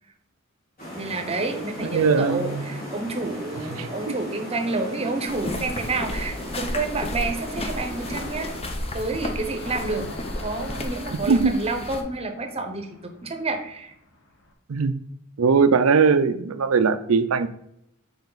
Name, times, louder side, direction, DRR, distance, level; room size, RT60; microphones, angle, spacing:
sound 1, 0.8-8.6, equal, 45° left, 2.7 m, -37 dB
voice 1, 1.0-8.5 8.9-13.9, right 3 dB, 30° right, 5 dB, 0.9 m, -29 dB
voice 2, 1.8-2.7 3.7-4.2 11.1-11.6 14.7-14.9 15.4-17.5, right 5 dB, 90° right, 12 dB, 0.5 m, -20 dB
sound 2, 5.3-12.0, left 1 dB, 30° left, 0.8 m, -33 dB
Car passing by / Traffic noise roadway noise / Engine, 7.2-14.5, left 2 dB, 65° left, 1.3 m, -44 dB
6.8 x 4.7 x 4.0 m, 0.75 s
head